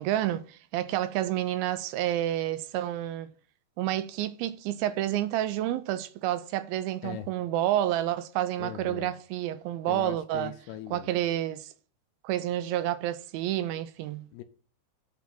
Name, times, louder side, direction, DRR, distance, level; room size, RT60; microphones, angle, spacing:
voice 1, 0.0-3.3 3.8-10.5 10.9-11.7 12.2-14.3, right 13 dB, 85° right, 2.2 m, -29 dB
voice 2, 8.6-9.1 9.8-11.1 14.3-14.4, left 12 dB, 80° left, 2.5 m, -40 dB
9.5 x 4.2 x 7.4 m
omnidirectional pair, 4.9 m